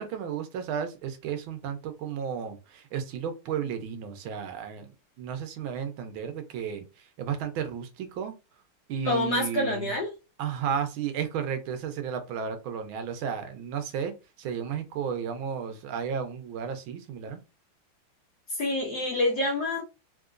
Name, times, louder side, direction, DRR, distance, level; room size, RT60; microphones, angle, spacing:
voice 1, 0.0-4.9 5.2-6.8 7.2-8.3 8.9-9.9 10.4-14.1 14.4-17.4, right 7 dB, 75° right, 1.4 m, -33 dB
voice 2, 9.0-10.1 18.5-19.8, left 2 dB, 65° left, 1.0 m, -27 dB
3.7 x 2.7 x 2.4 m
omnidirectional pair, 2.4 m